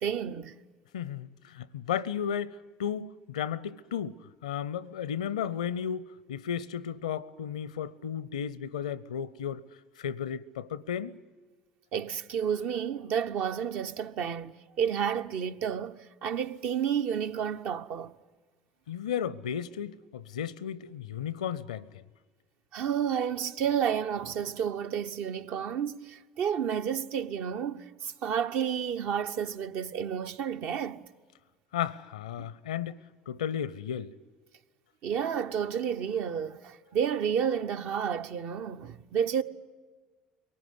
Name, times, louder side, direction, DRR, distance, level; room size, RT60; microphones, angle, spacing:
voice 1, 0.0-0.5 11.9-18.1 22.7-31.0 32.4-32.5 35.0-39.4, right 8 dB, 55° right, 0.8 m, -31 dB
voice 2, 0.9-4.2 4.4-9.6 10.0-11.2 18.9-21.9 31.7-33.0 33.3-34.1, left 8 dB, 75° left, 0.6 m, -34 dB
23.0 x 19.0 x 9.6 m
figure-of-eight pair, 65°, 4 cm